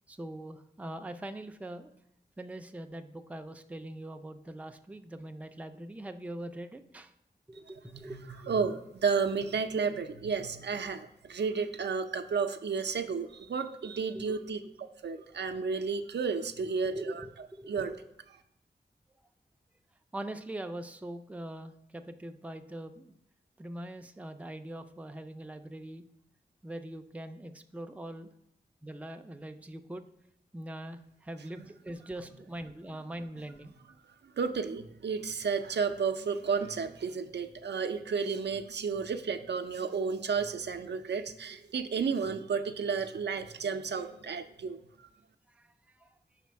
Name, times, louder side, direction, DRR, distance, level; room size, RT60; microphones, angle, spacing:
voice 1, 0.1-1.9 2.4-7.1 7.5-8.6 14.1-14.5 16.8-18.0 20.1-23.1 23.6-26.0 26.6-28.3 28.8-30.0 30.5-33.7 46.0-46.1, right 1 dB, 10° right, 6 dB, 0.4 m, -42 dB
voice 2, 7.9-14.6 15.0-17.3 17.7-17.9 34.4-45.1, right 5 dB, 80° right, 8 dB, 0.5 m, -32 dB
5.1 x 4.1 x 4.6 m, 0.81 s
wide cardioid pair, 85°, 17 cm